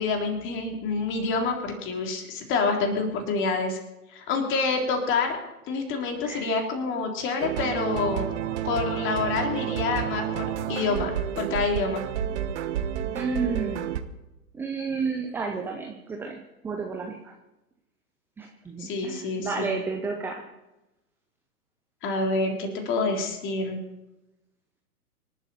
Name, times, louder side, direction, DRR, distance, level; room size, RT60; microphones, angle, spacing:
voice 1, 0.0-3.8 4.1-5.4 5.7-8.3 8.6-12.0 18.8-19.7 22.0-23.8, left 4 dB, 25° left, 2 dB, 3.4 m, -27 dB
sound 1, 7.4-14.0, right 10 dB, 45° right, 1.3 m, -30 dB
voice 2, 13.1-13.9 14.5-17.3 18.4-20.4, right 4 dB, 5° right, 3 dB, 0.6 m, -31 dB
26.0 x 12.0 x 4.3 m, 0.96 s
figure-of-eight pair, 115°, 48 cm